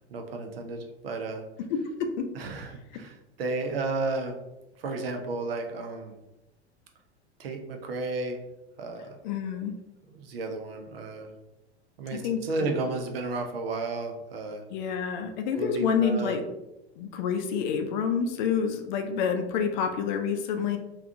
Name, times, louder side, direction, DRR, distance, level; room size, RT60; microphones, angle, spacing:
voice 1, 0.1-1.4 2.3-4.4 4.8-6.2 7.4-8.4 8.8-9.1 10.1-11.3 12.0-14.6 15.5-16.4, right 3 dB, 60° right, 4 dB, 0.7 m, -33 dB
voice 2, 1.7-2.3 9.2-9.7 12.1-12.7 14.7-16.4 17.0-20.8, left 6 dB, 45° left, 6 dB, 0.5 m, -28 dB
3.5 x 2.4 x 3.5 m, 0.93 s
figure-of-eight pair, 85°, 32 cm